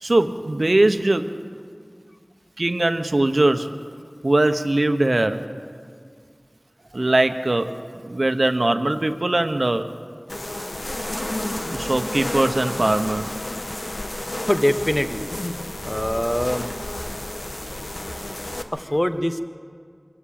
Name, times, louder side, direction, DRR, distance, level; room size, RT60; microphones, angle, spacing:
voice 1, 0.0-1.3 2.6-3.7 4.2-5.5 6.9-7.8 8.0-9.9 11.7-13.4, right 2 dB, 75° right, 8 dB, 0.9 m, -21 dB
sound 1, 10.3-18.6, left 1 dB, 65° left, 1.3 m, -31 dB
voice 2, 14.4-15.3 15.8-16.7 18.7-19.4, equal, 20° left, 9 dB, 1.1 m, -23 dB
24.5 x 12.5 x 8.8 m, 2.1 s
wide cardioid pair, 40°, 0 cm